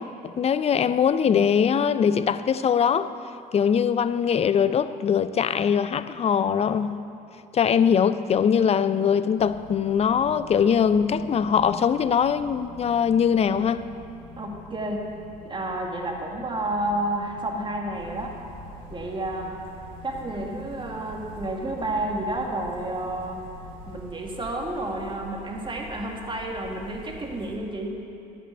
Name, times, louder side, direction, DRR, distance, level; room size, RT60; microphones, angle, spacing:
voice 1, 0.0-3.1 3.5-7.0 7.5-13.8, left 7 dB, 30° left, 0.5 m, -22 dB
sound 1, 9.4-24.0, left 2 dB, 85° left, 1.8 m, -46 dB
voice 2, 14.4-15.1 15.4-18.4 18.9-19.7 20.0-23.4 23.9-28.0, right 1 dB, 25° right, 2.0 m, -30 dB
sound 2, 17.9-27.6, right 2 dB, 75° right, 1.8 m, -46 dB
11.0 x 6.2 x 8.3 m
hypercardioid pair, 70°, 20 cm